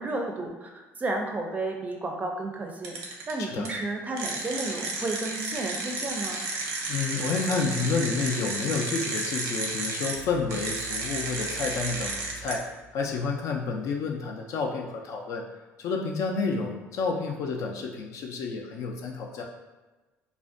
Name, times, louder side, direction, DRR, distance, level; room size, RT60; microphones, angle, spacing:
voice 1, 0.0-6.4, right 2 dB, 25° right, 2 dB, 0.4 m, -32 dB
sound 1, 2.8-3.3 3.6-3.7 4.2-10.2 10.5-12.5, right 3 dB, 80° right, 0.5 m, -32 dB
voice 2, 3.4-3.7 6.9-12.7 12.9-15.4 15.8-19.4, left 4 dB, 70° left, 1 dB, 0.4 m, -30 dB
sound 2, 10.1-14.0, right 5 dB, 10° left, 0.7 m, -47 dB
2.4 x 2.1 x 2.5 m, 1.2 s
cardioid pair, 100°, 6 cm